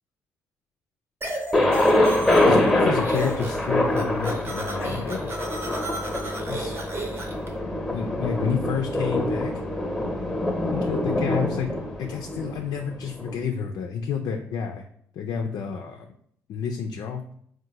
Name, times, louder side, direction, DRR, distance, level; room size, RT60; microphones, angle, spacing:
sound 1, 1.2-2.7 3.0-3.7 3.9-7.5, right 1 dB, 35° right, 0.8 m, -33 dB
Thunder, 1.5-13.3, left 1 dB, 5° left, 0.8 m, -24 dB
voice 1, 2.4-5.3 6.5-6.8 7.9-9.6 10.7-11.7 12.0-14.8 15.2-16.1 16.5-17.2, left 6 dB, 65° left, 3 dB, 0.3 m, -30 dB
3.6 x 2.1 x 2.8 m, 0.66 s
supercardioid pair, 60°, 7 cm